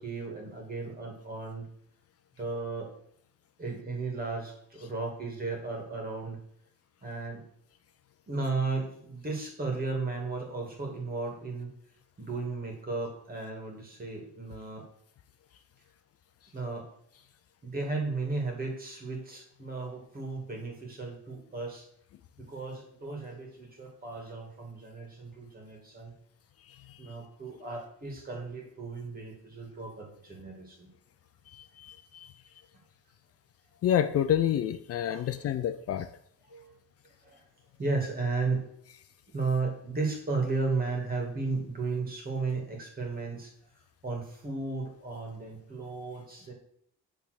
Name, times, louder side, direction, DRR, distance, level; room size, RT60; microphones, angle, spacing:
voice 1, 0.0-1.7 2.4-2.9 3.6-6.4 7.0-7.4 8.3-11.7 12.2-14.8 16.5-16.9 17.6-21.9 22.4-26.2 27.0-30.9 35.1-35.5 36.5-36.8 37.2-37.4 37.8-38.6 39.3-43.5 44.0-46.5, right 3 dB, 30° right, 1 dB, 2.1 m, -34 dB
voice 2, 31.5-32.3 33.8-36.1, left 10 dB, 50° left, 10 dB, 0.4 m, -28 dB
8.4 x 3.5 x 6.5 m, 0.68 s
cardioid pair, 145°, 31 cm